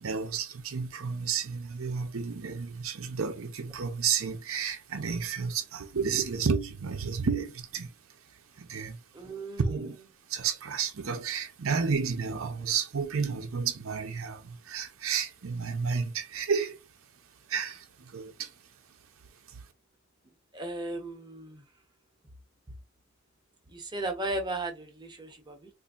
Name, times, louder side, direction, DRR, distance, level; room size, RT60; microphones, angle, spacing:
voice 1, 0.0-7.9 8.6-8.9 9.7-10.0 10.3-16.8 17.5-17.8 18.1-18.3, right 6 dB, 75° right, 0.6 m, -31 dB
voice 2, 9.1-9.6 20.5-21.6 23.7-25.7, right 2 dB, 20° right, 0.8 m, -35 dB
4.0 x 2.6 x 2.4 m
head